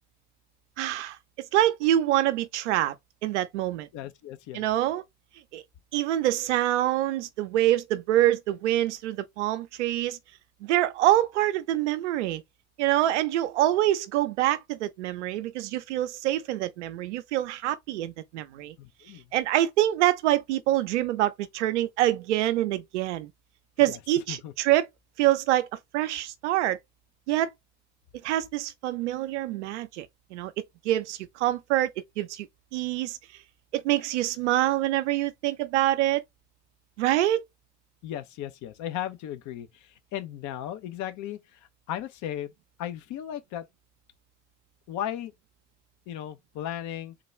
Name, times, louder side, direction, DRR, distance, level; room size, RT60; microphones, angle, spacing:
voice 1, 0.8-3.0 3.2-3.9 4.5-5.0 5.5-5.6 5.9-10.2 10.6-12.4 12.8-18.7 19.3-23.3 23.8-24.9 25.2-25.7 25.9-26.8 27.3-27.5 28.2-30.5 30.8-31.9 32.2-32.5 32.7-33.2 33.7-36.2 37.0-37.4, right 14 dB, 85° right, 0.6 m, -25 dB
voice 2, 3.9-4.7 18.8-19.3 23.9-24.0 24.3-24.5 38.0-42.5 42.8-43.6 44.9-45.3 46.1-47.1, left 11 dB, 55° left, 0.7 m, -36 dB
3.8 x 2.3 x 3.1 m
hypercardioid pair, 70°, 34 cm